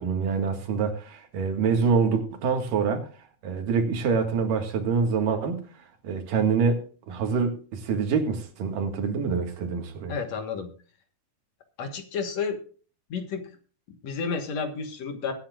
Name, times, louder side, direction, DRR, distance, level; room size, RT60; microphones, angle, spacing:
voice 1, 0.0-3.1 3.4-5.7 6.0-10.2, right 5 dB, 85° right, 5 dB, 3.4 m, -26 dB
voice 2, 10.1-10.7 11.8-12.6 13.1-13.5 13.9-15.3, left 5 dB, 60° left, 6 dB, 2.4 m, -31 dB
22.5 x 10.0 x 2.5 m, 0.39 s
omnidirectional pair, 3.8 m